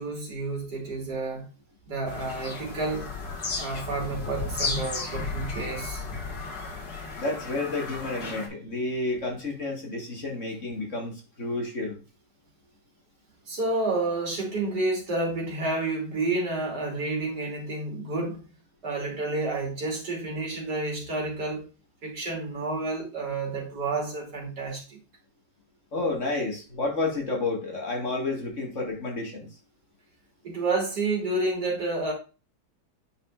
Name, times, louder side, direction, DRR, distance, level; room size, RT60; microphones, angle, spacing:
voice 1, 0.0-1.5 1.9-3.1 3.6-6.0 13.5-18.4 18.8-21.7 22.0-25.0 30.4-32.1, right 2 dB, 65° right, 3.4 m, -30 dB
Bird vocalization bird call bird song, 2.1-8.5, left 3 dB, 80° left, 2.6 m, -34 dB
voice 2, 7.2-12.0 25.9-29.6, left 2 dB, 45° left, 2.1 m, -30 dB
9.7 x 5.5 x 2.4 m
omnidirectional pair, 1.9 m